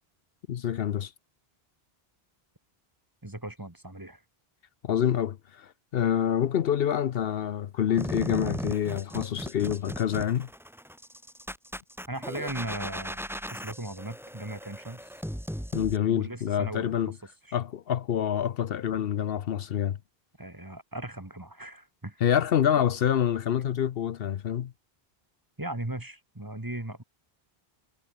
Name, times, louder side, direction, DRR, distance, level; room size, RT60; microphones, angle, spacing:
voice 1, 0.5-1.1 4.8-10.5 15.7-17.1 17.5-20.0 22.2-24.7, left 9 dB, 70° left, 0.9 m, -27 dB
voice 2, 3.2-4.2 12.1-13.2 13.5-15.1 16.0-17.0 17.5-17.6 20.4-22.2 25.6-27.0, right 1 dB, 20° right, 1.9 m, -38 dB
sound 1, 8.0-16.0, equal, ahead, 3.7 m, -37 dB
omnidirectional pair, 1.0 m